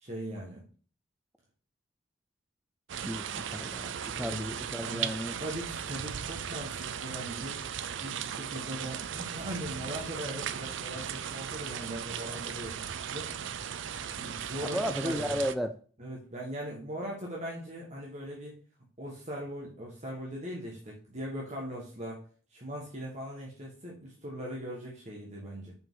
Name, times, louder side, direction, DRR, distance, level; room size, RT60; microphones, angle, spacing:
voice 1, 0.0-0.6 4.1-4.5 4.8-7.6 8.0-13.3 14.2-15.4 16.0-18.6 19.0-22.2 22.5-25.7, equal, 35° right, -3 dB, 1.4 m, -40 dB
sound 1, 2.9-15.5, right 8 dB, 65° right, 0.4 m, -37 dB
voice 2, 3.0-5.4 14.6-15.8, equal, ahead, 7 dB, 0.3 m, -34 dB
6.0 x 4.9 x 3.7 m, 0.41 s
head